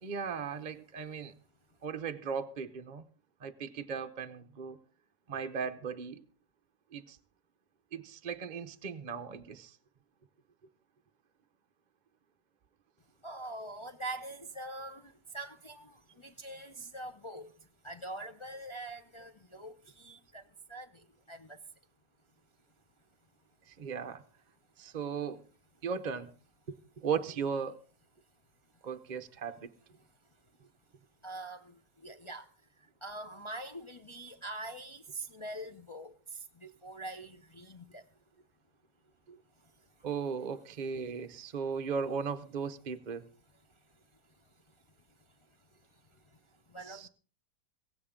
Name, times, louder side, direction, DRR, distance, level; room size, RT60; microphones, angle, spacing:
voice 1, 0.0-1.3 1.8-3.0 3.4-4.8 5.3-6.2 6.9-7.2 7.9-9.8 23.7-24.2 24.8-25.4 25.8-26.3 26.7-27.8 28.8-29.7 39.3-39.4 40.0-43.2 46.9-47.1, right 6 dB, 40° right, 0.7 m, -37 dB
voice 2, 13.2-21.6 31.2-38.1 45.9-46.4 46.7-47.1, right 2 dB, 40° left, 0.4 m, -44 dB
16.5 x 16.0 x 3.7 m
omnidirectional pair, 1.7 m